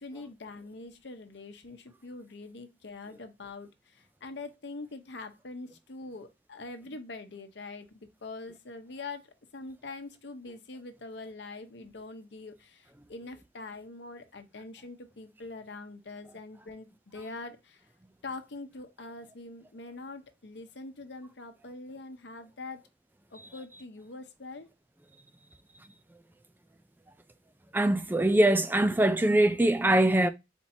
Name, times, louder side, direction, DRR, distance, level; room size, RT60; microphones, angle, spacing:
voice 1, 0.0-9.3 9.5-17.9 18.2-22.8 23.3-24.7, left 3 dB, 70° left, 0.8 m, -44 dB
voice 2, 27.7-30.3, right 1 dB, 10° right, 0.3 m, -23 dB
4.4 x 2.7 x 4.2 m
head